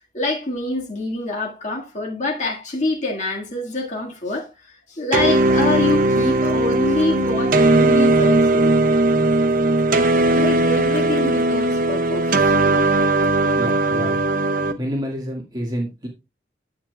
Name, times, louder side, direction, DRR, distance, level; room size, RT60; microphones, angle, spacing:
voice 1, 0.1-8.8 10.3-12.8, left 2 dB, 45° left, 1.9 m, -26 dB
sound 1, 5.1-14.7, right 2 dB, 50° right, 0.8 m, -18 dB
voice 2, 13.5-14.1 14.8-16.1, equal, 25° right, 1.9 m, -28 dB
10.0 x 8.8 x 2.3 m
head